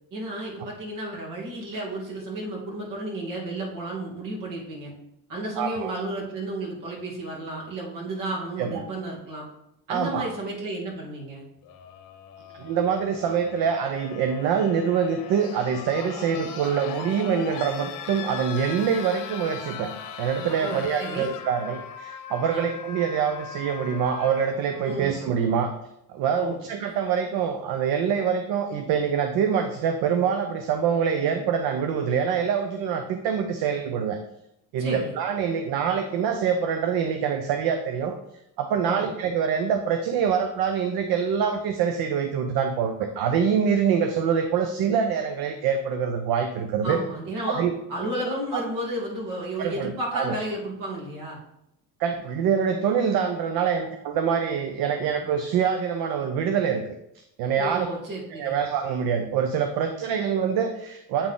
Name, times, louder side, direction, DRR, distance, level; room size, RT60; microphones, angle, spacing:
voice 1, 0.1-4.9 5.3-9.5 9.9-11.4 20.6-21.3 22.5-22.7 24.8-25.1 26.3-26.6 34.8-35.1 38.8-39.1 46.8-47.6 47.9-51.4 57.6-58.5, right 1 dB, 55° right, -3 dB, 2.5 m, -32 dB
voice 2, 5.6-5.9 8.6-8.8 9.9-10.3 12.6-19.9 20.2-25.7 26.1-34.2 34.7-38.2 38.6-47.0 47.6-47.8 48.5-48.6 49.6-50.3 52.0-56.8 57.4-57.9 58.4-61.3, right 7 dB, 70° right, 7 dB, 0.7 m, -25 dB
sound 1, 11.6-25.6 26.8-26.9, left 8 dB, 55° left, 0.9 m, -40 dB
8.5 x 3.7 x 3.8 m, 0.81 s
cardioid pair, 110°, 38 cm